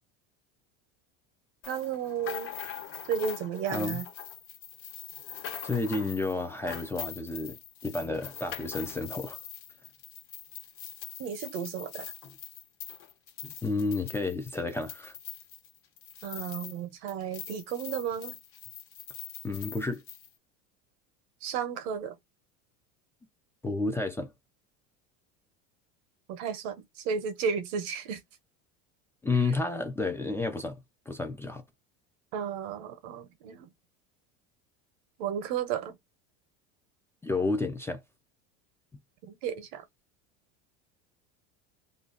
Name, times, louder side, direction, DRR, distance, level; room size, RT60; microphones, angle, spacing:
sound 1, 1.6-16.8 17.1-20.3, left 9 dB, 40° left, 1.0 m, -43 dB
voice 1, 1.7-2.5 3.1-4.1 11.2-12.1 16.2-18.4 21.4-22.2 26.3-28.2 32.3-33.7 35.2-35.9 39.3-39.8, right 7 dB, 70° right, 0.9 m, -33 dB
voice 2, 5.6-7.6 7.8-9.4 13.4-15.1 19.4-20.0 23.6-24.3 29.2-30.8 31.1-31.6 37.2-38.0, left 3 dB, 5° left, 0.4 m, -31 dB
2.6 x 2.3 x 3.8 m
supercardioid pair, 125°, 34 cm